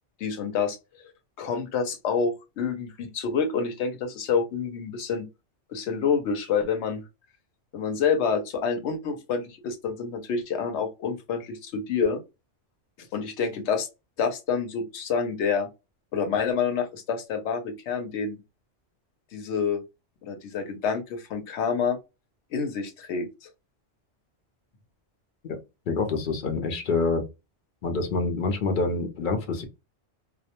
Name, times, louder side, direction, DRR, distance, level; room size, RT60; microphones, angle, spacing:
voice 1, 0.2-0.8 1.4-5.2 5.7-7.0 7.7-12.2 13.0-13.9 14.2-15.7 16.1-18.4 19.3-19.8 20.2-22.0 22.5-23.5, left 6 dB, 75° left, 0.9 m, -28 dB
voice 2, 25.9-27.2 27.8-29.6, left 3 dB, 55° left, 0.7 m, -26 dB
2.2 x 2.1 x 2.8 m
omnidirectional pair, 1.2 m